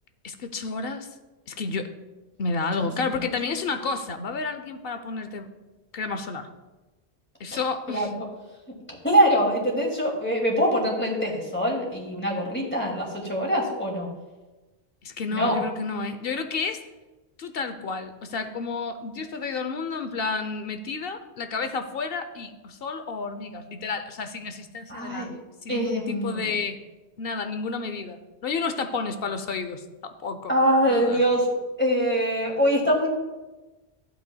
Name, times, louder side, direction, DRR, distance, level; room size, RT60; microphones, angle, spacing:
voice 1, 0.2-1.1 1.5-1.9 2.4-5.5 5.9-6.5 7.4-8.1 15.0-16.9 17.4-26.8 27.2-30.5 30.9-31.2, left 4 dB, 60° left, 9 dB, 0.9 m, -31 dB
voice 2, 9.0-14.1 15.3-15.6 24.9-25.3 25.7-26.5 30.5-31.5 31.8-33.1, equal, 10° left, -2 dB, 2.3 m, -23 dB
14.5 x 8.2 x 2.3 m, 1.1 s
omnidirectional pair, 1.1 m